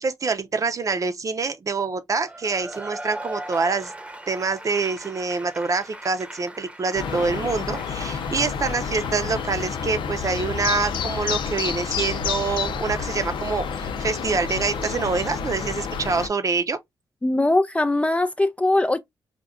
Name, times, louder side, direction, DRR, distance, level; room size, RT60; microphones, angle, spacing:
voice 1, 0.0-3.9 4.3-16.8, right 4 dB, 45° right, 0.7 m, -26 dB
Cheering / Applause / Crowd, 2.2-9.9, right 1 dB, 15° right, 0.9 m, -39 dB
sound 1, 6.9-16.3, left 6 dB, 85° left, 0.5 m, -29 dB
voice 2, 17.2-19.0, left 2 dB, 15° left, 0.4 m, -21 dB
5.1 x 2.4 x 2.4 m
cardioid pair, 80°, 8 cm